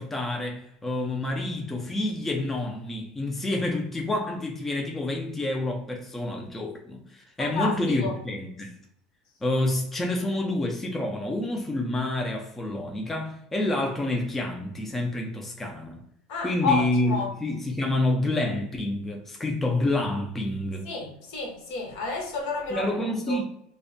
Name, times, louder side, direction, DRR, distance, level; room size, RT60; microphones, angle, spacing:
voice 1, 0.0-8.8 9.4-16.0 16.4-20.9 22.7-23.4, left 2 dB, 10° left, 0.3 m, -28 dB
voice 2, 7.4-8.1 16.3-17.3 20.8-22.9 23.3-23.4, left 3 dB, 70° left, 0.8 m, -30 dB
2.5 x 2.1 x 2.5 m
supercardioid pair, 145°, 2 cm